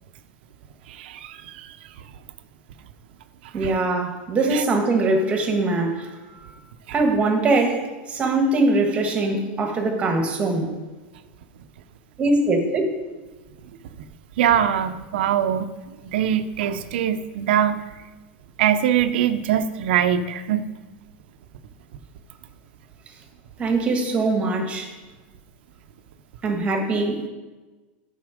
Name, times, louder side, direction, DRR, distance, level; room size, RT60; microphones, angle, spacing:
voice 1, 0.9-1.8 3.5-3.8 4.5-4.6 14.4-15.7 16.0-17.8 18.6-20.6, right 9 dB, 75° right, 10 dB, 0.7 m, -22 dB
voice 2, 3.5-6.1 6.9-10.7 12.2-12.8 23.6-24.9 26.4-27.3, right 2 dB, 20° right, 4 dB, 1.5 m, -22 dB
9.4 x 5.7 x 5.1 m, 1.2 s
supercardioid pair, 145°, 6 cm